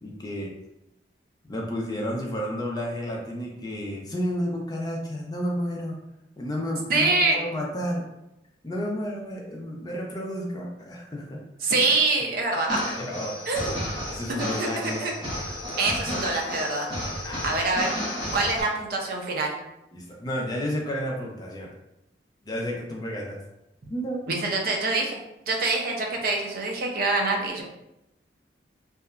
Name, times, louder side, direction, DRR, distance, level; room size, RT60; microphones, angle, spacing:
voice 1, 0.0-0.5 1.5-6.0 6.4-8.0 8.6-11.7 13.0-13.3 14.1-15.0 17.2-17.6 19.9-21.7 22.4-23.4 23.9-24.3, equal, 20° left, -1 dB, 0.4 m, -31 dB
voice 2, 6.9-7.4 11.6-12.8 13.5-13.7 14.4-15.1 15.8-16.9 17.4-17.9 18.3-19.5 24.3-25.2 25.5-27.6, right 3 dB, 55° right, 0 dB, 0.5 m, -25 dB
sound 1, 12.6-18.6, equal, 25° right, 1.1 m, -32 dB
2.8 x 2.2 x 2.3 m, 0.88 s
head